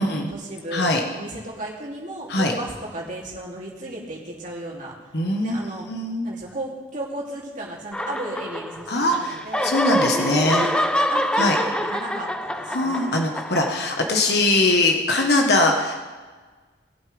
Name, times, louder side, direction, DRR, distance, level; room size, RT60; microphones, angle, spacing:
voice 1, 0.0-0.8 1.1-4.9 5.4-5.9 6.2-9.7 10.0-13.2, right 1 dB, 45° right, -4 dB, 2.8 m, -34 dB
voice 2, 0.7-1.0 2.3-2.5 5.1-5.5 5.9-6.3 8.9-9.4 9.6-10.6 11.4-11.6 12.7-16.0, left 2 dB, 60° left, 2 dB, 1.3 m, -21 dB
sound 1, 7.9-9.1 9.3-14.3, left 1 dB, 5° left, 0.4 m, -26 dB
20.5 x 8.2 x 3.4 m, 1.4 s
head